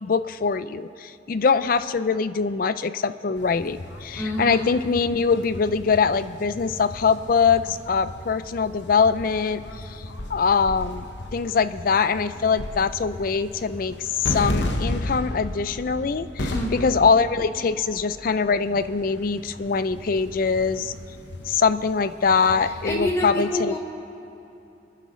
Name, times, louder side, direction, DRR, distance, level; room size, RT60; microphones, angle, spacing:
voice 1, 0.0-9.6 9.9-10.0 10.3-11.0 11.3-20.9 21.5-23.7, left 5 dB, 50° left, 14 dB, 0.4 m, -23 dB
sound 1, 3.4-23.1, left 1 dB, 75° left, 1.0 m, -35 dB
voice 2, 4.2-4.7 16.5-16.9 22.6-23.8, equal, 15° left, -1 dB, 1.6 m, -28 dB
26.0 x 10.5 x 3.2 m, 2.9 s
head